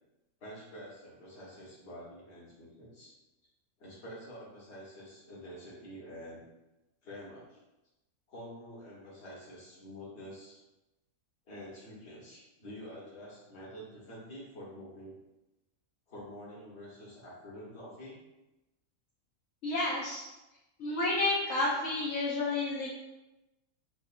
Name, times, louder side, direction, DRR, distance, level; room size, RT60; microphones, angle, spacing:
voice 1, 0.4-3.1 3.8-6.4 7.0-7.6 8.3-10.6 11.5-15.1 16.1-18.2, equal, 50° left, -6 dB, 1.5 m, -47 dB
voice 2, 19.6-20.2 20.8-22.9, left 2 dB, 70° left, -5 dB, 1.0 m, -30 dB
5.0 x 2.6 x 2.5 m, 0.99 s
omnidirectional pair, 1.5 m